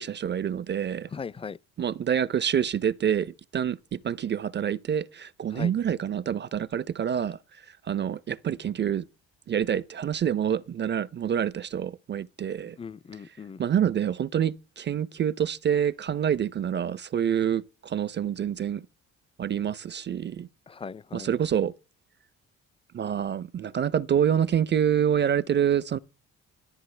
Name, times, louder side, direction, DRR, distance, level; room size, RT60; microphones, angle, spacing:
voice 1, 0.0-1.1 1.8-7.4 7.9-9.0 9.5-12.8 13.6-18.8 19.4-20.5 21.1-21.7 22.9-26.0, right 9 dB, 35° right, 0.5 m, -27 dB
voice 2, 1.1-1.6 5.5-5.7 12.8-13.6 20.7-21.3, left 6 dB, 20° left, 0.5 m, -38 dB
13.5 x 12.5 x 3.3 m
cardioid pair, 85°, 29 cm